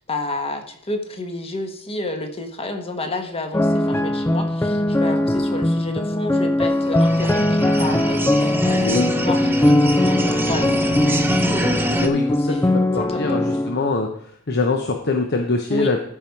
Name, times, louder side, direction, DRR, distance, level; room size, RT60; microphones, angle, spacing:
voice 1, 0.1-10.7 11.6-11.9 12.5-12.7 13.1-13.2 15.7-15.9, left 2 dB, 25° left, 5 dB, 1.3 m, -30 dB
sound 1, 3.5-13.8, left 1 dB, 10° left, 0.3 m, -20 dB
sound 2, 6.7-12.1, right 1 dB, 10° right, 0.8 m, -25 dB
voice 2, 8.8-9.1 11.9-16.0, left 3 dB, 50° left, 3 dB, 0.9 m, -24 dB
13.5 x 5.5 x 4.7 m, 0.65 s
head